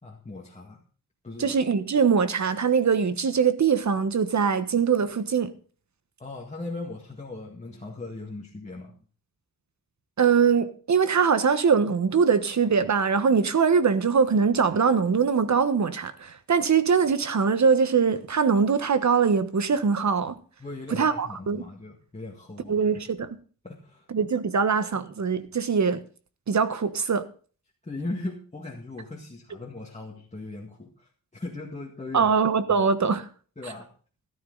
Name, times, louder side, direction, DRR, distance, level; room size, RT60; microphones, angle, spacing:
voice 1, 0.0-0.8 1.2-1.6 6.2-9.0 20.6-23.0 23.6-24.1 27.8-32.3 32.8-32.9 33.6-33.9, left 2 dB, 20° left, 2.0 m, -38 dB
voice 2, 1.4-5.5 10.2-20.4 20.9-21.6 22.7-23.3 24.1-26.0 26.5-27.2 32.1-33.2, right 6 dB, 55° right, 1.3 m, -22 dB
13.5 x 12.5 x 4.0 m
wide cardioid pair, 135°, 35 cm